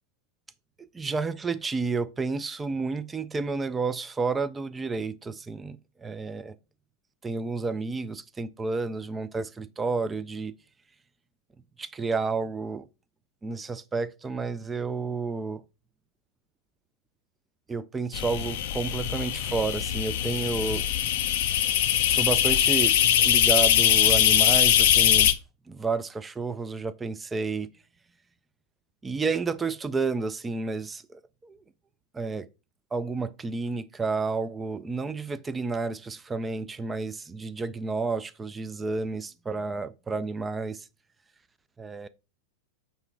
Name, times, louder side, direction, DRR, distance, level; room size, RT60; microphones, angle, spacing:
voice 1, 0.8-6.5 7.2-10.5 11.8-12.9 13.4-15.6 17.7-20.9 22.1-25.3 25.7-27.7 29.0-31.6 32.1-32.5 32.9-40.9 41.8-42.1, right 4 dB, 15° right, 0.3 m, -31 dB
sound 1, 18.1-25.3, left 11 dB, 50° left, 0.4 m, -22 dB
5.4 x 2.9 x 3.5 m
figure-of-eight pair, 90°, 0 cm